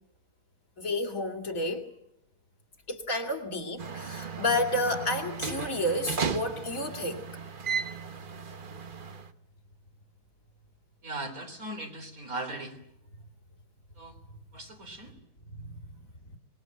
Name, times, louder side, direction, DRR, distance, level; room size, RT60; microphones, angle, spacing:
voice 1, 0.8-1.9 2.9-7.3 15.5-16.4, left 1 dB, 55° left, 3 dB, 2.8 m, -31 dB
sound 1, 3.8-9.3, right 6 dB, 35° right, 1.0 m, -35 dB
voice 2, 11.0-12.8 14.0-14.2 14.5-15.1, right 2 dB, 55° right, 4 dB, 4.0 m, -38 dB
25.0 x 20.0 x 7.9 m, 0.82 s
omnidirectional pair, 1.7 m